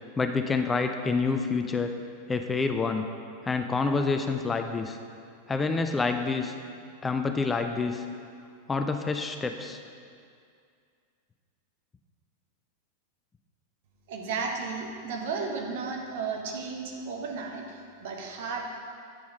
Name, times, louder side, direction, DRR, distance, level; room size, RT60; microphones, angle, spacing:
voice 1, 0.2-1.9 2.3-3.1 3.4-5.0 5.5-6.5 7.0-8.0 8.7-9.8, left 4 dB, 15° left, 6 dB, 0.4 m, -27 dB
voice 2, 14.1-18.7, right 4 dB, 55° right, 1 dB, 1.0 m, -34 dB
8.9 x 4.7 x 4.9 m, 2.3 s
figure-of-eight pair, 90°, 0 cm